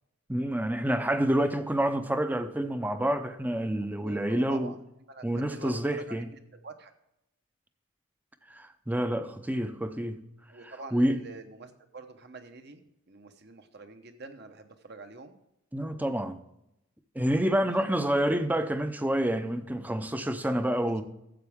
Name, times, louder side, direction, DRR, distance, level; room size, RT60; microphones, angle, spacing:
voice 1, 0.3-4.7 5.2-6.3 8.5-10.2 10.6-11.2 15.7-16.4 17.1-21.0, right 1 dB, 10° right, 0.6 m, -28 dB
voice 2, 3.8-4.8 5.1-6.9 9.3-9.4 10.5-15.4 17.8-18.2 20.8-21.0, right 3 dB, 50° right, 1.0 m, -46 dB
12.5 x 8.0 x 3.5 m
head